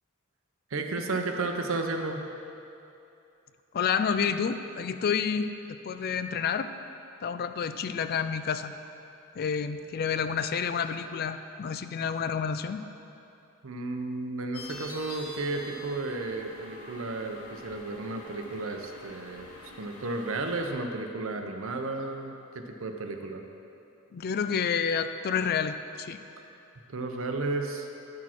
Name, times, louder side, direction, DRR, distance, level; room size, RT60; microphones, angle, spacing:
voice 1, 0.7-2.2 13.6-19.5 19.8-23.4 26.9-27.9, right 3 dB, 65° right, 4 dB, 0.7 m, -33 dB
voice 2, 3.7-6.7 7.2-8.7 9.4-12.8 24.1-26.2, left 6 dB, 45° left, 10 dB, 0.3 m, -29 dB
sound 1, 14.5-20.7, left 1 dB, 90° left, 0.9 m, -46 dB
10.5 x 6.2 x 4.4 m, 2.8 s
head